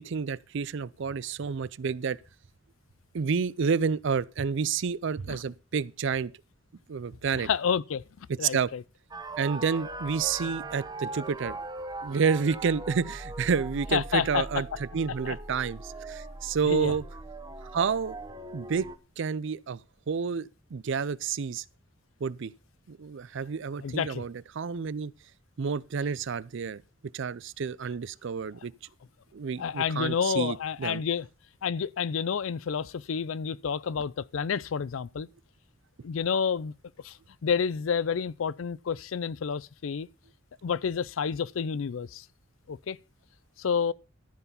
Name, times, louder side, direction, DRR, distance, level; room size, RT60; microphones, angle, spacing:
voice 1, 0.0-2.2 3.1-6.3 6.9-7.5 8.4-8.7 9.4-11.6 12.0-14.7 14.9-17.0 17.7-18.2 18.5-18.9 19.2-19.8 20.1-21.6 22.2-22.5 22.9-25.1 25.6-26.8 27.1-28.7 29.3-31.0, right 6 dB, 65° right, 0.5 m, -29 dB
voice 2, 7.3-8.8 12.1-12.2 13.9-14.4 15.2-15.3 16.6-16.9 23.8-24.2 29.6-31.3 31.6-35.3 36.0-36.7 37.0-37.2 37.4-40.1 40.6-42.2 42.7-43.0 43.6-43.9, left 6 dB, 80° left, 0.4 m, -29 dB
sound 1, 9.1-19.0, right 2 dB, 20° right, 0.9 m, -40 dB
13.5 x 4.7 x 6.9 m
head